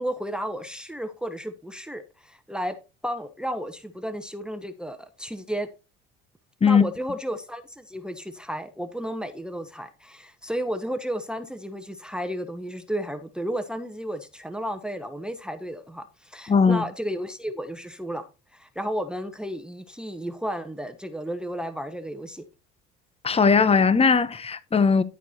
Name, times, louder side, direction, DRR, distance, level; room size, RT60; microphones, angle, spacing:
voice 1, 0.0-2.8 3.0-5.7 6.6-18.2 18.5-22.4, equal, 5° right, 1.1 m, -33 dB
voice 2, 16.5-16.8 23.2-25.0, left 5 dB, 20° left, 0.8 m, -19 dB
12.0 x 4.7 x 4.3 m
hypercardioid pair, 70°, 31 cm